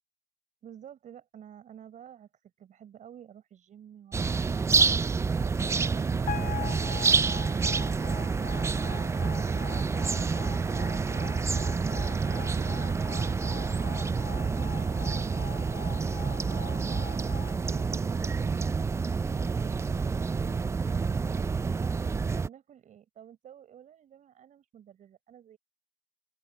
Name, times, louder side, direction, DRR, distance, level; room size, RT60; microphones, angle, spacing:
voice 1, 0.6-4.9 5.4-9.1 16.4-18.5 19.1-25.6, right 9 dB, 45° right, 6.2 m, -51 dB
sound 1, 4.1-22.5, right 5 dB, 15° right, 0.4 m, -28 dB
sound 2, 6.3-18.5, left 11 dB, 50° left, 0.5 m, -43 dB
open air
cardioid pair, 110°, 17 cm